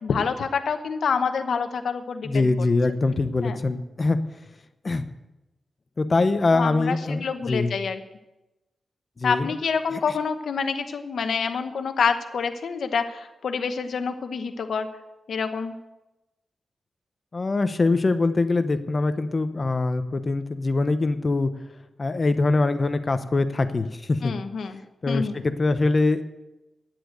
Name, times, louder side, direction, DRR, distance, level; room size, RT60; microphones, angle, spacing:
voice 1, 0.0-2.3 3.4-3.6 6.5-8.0 9.2-14.9 15.3-15.8 24.2-24.8 25.1-25.3, left 5 dB, 75° left, 8 dB, 1.0 m, -27 dB
voice 2, 2.2-4.2 4.8-5.1 6.0-7.7 9.2-9.5 9.9-10.0 17.3-21.5 22.0-24.4 25.0-26.2, left 3 dB, 35° left, 10 dB, 0.9 m, -23 dB
10.5 x 7.8 x 7.9 m, 0.99 s
wide cardioid pair, 110°, 0 cm